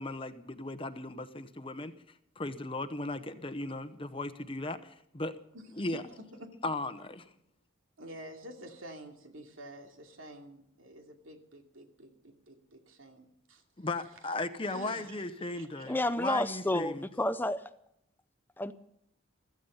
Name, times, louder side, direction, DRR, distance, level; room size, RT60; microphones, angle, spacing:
voice 1, 0.0-1.9 2.4-5.3 5.7-6.0 6.6-7.3 13.8-17.1, left 2 dB, 25° left, 11 dB, 0.9 m, -36 dB
voice 2, 5.5-6.6 8.0-13.6 14.6-15.2 15.5-16.0, right 1 dB, 80° right, 4 dB, 2.7 m, -49 dB
voice 3, 15.9-17.6 18.6-18.7, left 1 dB, 10° left, 12 dB, 0.5 m, -30 dB
15.5 x 14.5 x 5.6 m, 0.74 s
head